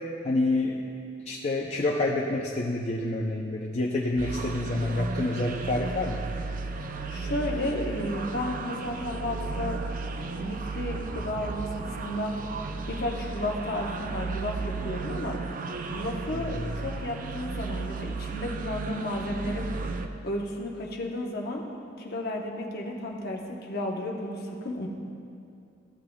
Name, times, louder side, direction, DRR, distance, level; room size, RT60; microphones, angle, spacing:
voice 1, 0.2-0.9 1.3-6.2 16.3-16.7, left 2 dB, 35° left, -2 dB, 0.5 m, -28 dB
sound 1, 4.2-20.1, right 4 dB, 45° right, 0.4 m, -34 dB
voice 2, 7.1-9.8 10.4-12.3 12.9-15.4 15.9-19.7 20.2-21.6 22.0-24.9, left 1 dB, 55° left, 0 dB, 1.0 m, -33 dB
14.5 x 7.6 x 2.3 m, 2.5 s
head